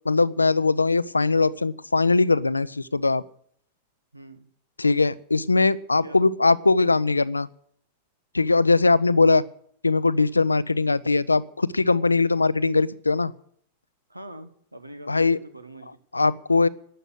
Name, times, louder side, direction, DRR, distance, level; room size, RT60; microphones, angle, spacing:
voice 1, 0.1-3.2 4.8-7.5 8.3-9.4 9.8-13.3 15.1-15.4 16.1-16.7, left 3 dB, 80° left, 18 dB, 0.5 m, -21 dB
voice 2, 4.1-4.5 6.0-6.2 14.1-16.0, right 1 dB, 85° right, 11 dB, 1.3 m, -43 dB
12.5 x 9.0 x 9.9 m, 0.65 s
figure-of-eight pair, 90°, 0 cm